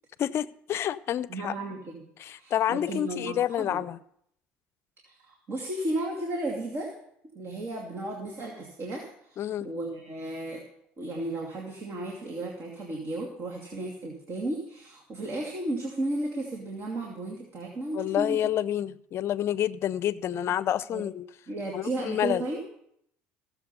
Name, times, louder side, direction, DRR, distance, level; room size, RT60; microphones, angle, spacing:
voice 1, 0.2-1.5 2.2-4.0 9.4-9.7 17.9-21.3 21.7-22.4, left 11 dB, 50° left, 19 dB, 0.5 m, -28 dB
voice 2, 1.3-1.9 2.3-3.8 5.0-6.9 7.3-10.6 11.0-18.4 20.9-21.0 21.5-22.6, right 2 dB, 45° right, -1 dB, 2.5 m, -34 dB
16.0 x 7.3 x 5.4 m, 0.71 s
supercardioid pair, 90°, 6 cm